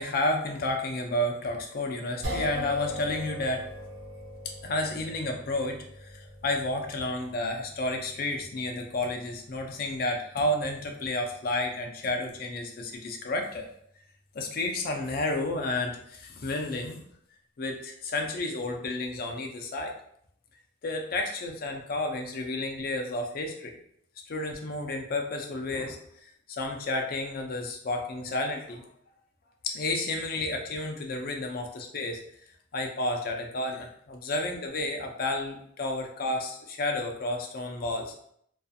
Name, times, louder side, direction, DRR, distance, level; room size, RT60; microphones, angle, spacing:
voice 1, 0.0-3.7 4.6-5.8 6.1-13.7 14.3-17.0 17.6-19.9 20.8-23.8 24.3-26.0 26.2-28.8 29.6-32.2 32.7-38.1, left 2 dB, 50° left, 3 dB, 0.4 m, -31 dB
sound 1, 2.2-14.5, equal, 90° right, 0.9 m, -42 dB
2.6 x 2.3 x 2.4 m, 0.68 s
head